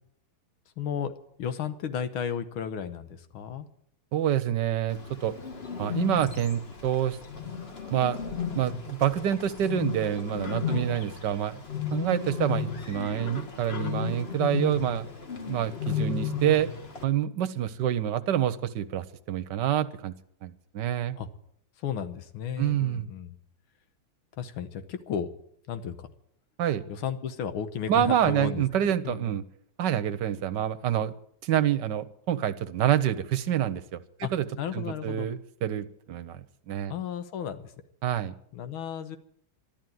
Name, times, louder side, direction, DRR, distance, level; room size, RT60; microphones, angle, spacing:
voice 1, 0.8-1.1 1.4-3.7 10.7-10.8 11.7-11.9 21.2-21.3 21.8-23.4 24.4-25.3 25.7-26.1 26.9-28.6 29.0-29.3 34.2-34.3 34.6-35.3 36.9-37.7 38.5-39.2, left 8 dB, 85° left, 10 dB, 1.9 m, -33 dB
voice 2, 4.1-5.3 5.8-7.2 7.9-8.2 8.5-11.6 11.9-15.1 15.5-16.7 17.0-20.1 20.4-21.2 22.6-23.1 26.6-26.8 27.9-29.4 29.8-31.1 31.4-34.4 34.7-36.9 38.0-38.3, right 10 dB, 65° right, 12 dB, 1.4 m, -27 dB
Bird, 4.9-17.0, left 6 dB, 35° left, 1.5 m, -34 dB
13.0 x 12.0 x 9.2 m, 0.68 s
omnidirectional pair, 2.2 m